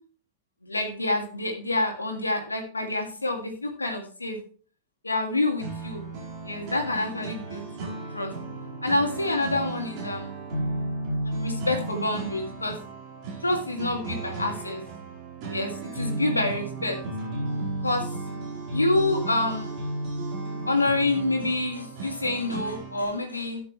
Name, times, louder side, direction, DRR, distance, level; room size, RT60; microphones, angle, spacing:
voice 1, 0.6-4.4 5.0-6.0 6.4-8.3 8.8-10.4 11.2-12.8 13.4-14.8 15.5-17.0 17.8-18.1 18.7-19.8 20.7-23.6, left 2 dB, 80° left, 3 dB, 2.0 m, -27 dB
sound 1, 5.6-23.0, right 2 dB, 40° right, 4.3 m, -34 dB
12.5 x 8.5 x 3.2 m, 0.41 s
figure-of-eight pair, 90°, 0 cm